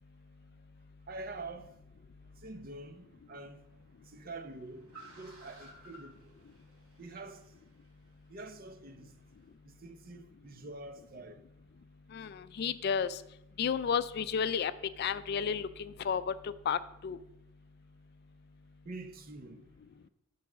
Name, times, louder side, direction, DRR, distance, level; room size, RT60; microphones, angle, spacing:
voice 1, 1.1-1.7 2.4-3.6 4.1-4.8 5.2-6.3 7.0-7.4 8.3-9.1 9.6-11.4 18.9-19.6, right 2 dB, 45° right, 0.6 m, -46 dB
Car, 2.1-9.5, right 1 dB, 85° right, 3.0 m, -59 dB
voice 2, 12.1-13.2 13.6-14.7 15.0-17.2, left 7 dB, 50° left, 0.3 m, -32 dB
7.0 x 4.7 x 6.1 m
head